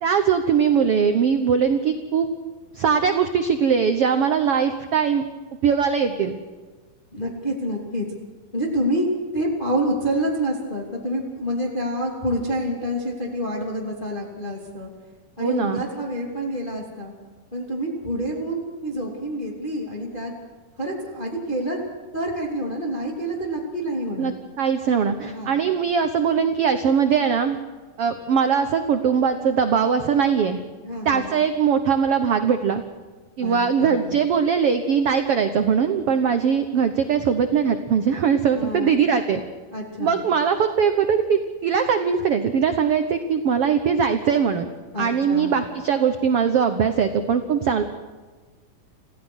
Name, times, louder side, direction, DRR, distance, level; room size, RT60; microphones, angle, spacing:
voice 1, 0.0-2.3 2.7-5.3 5.6-6.4 15.4-15.8 24.2-27.6 28.0-30.6 31.0-32.8 33.4-39.4 40.0-44.6 45.0-47.8, right 7 dB, 75° right, 7 dB, 1.3 m, -21 dB
voice 2, 7.1-8.1 8.5-9.1 9.3-14.9 15.4-17.1 17.5-20.3 20.8-21.8 22.1-24.3 25.2-25.6 30.8-31.3 33.4-34.1 38.6-38.9 39.7-40.2 44.9-45.6, equal, 15° left, -1 dB, 2.7 m, -27 dB
27.5 x 16.0 x 6.3 m, 1.4 s
omnidirectional pair, 4.2 m